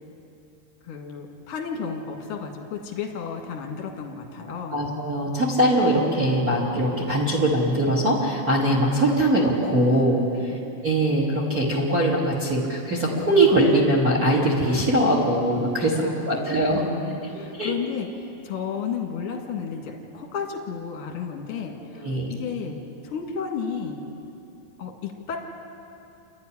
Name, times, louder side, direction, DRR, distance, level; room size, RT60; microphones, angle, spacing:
voice 1, 0.8-4.8 10.5-10.6 15.8-24.0 24.8-25.4, left 6 dB, 50° left, 1 dB, 1.8 m, -33 dB
voice 2, 4.7-16.8 17.3-17.7 22.0-22.4, right 1 dB, 35° right, -3 dB, 1.5 m, -22 dB
28.5 x 12.5 x 10.0 m, 2.7 s
omnidirectional pair, 5.6 m